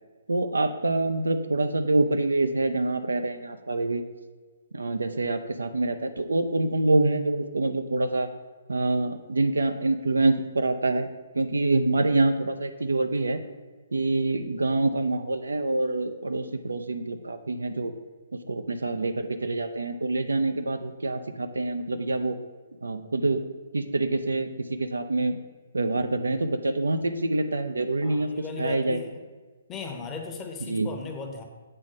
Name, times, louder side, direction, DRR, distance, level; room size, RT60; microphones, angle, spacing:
voice 1, 0.3-4.0 4.7-8.3 8.7-11.1 11.3-13.4 13.9-17.9 18.5-22.4 22.8-23.4 23.7-24.5 24.8-25.4 25.7-28.3 28.6-29.0 30.7-30.9, right 2 dB, 70° right, 8 dB, 0.6 m, -26 dB
voice 2, 28.0-29.2 29.7-31.4, left 4 dB, 15° left, 3 dB, 1.0 m, -37 dB
7.6 x 4.1 x 6.1 m, 1.4 s
figure-of-eight pair, 130°, 0 cm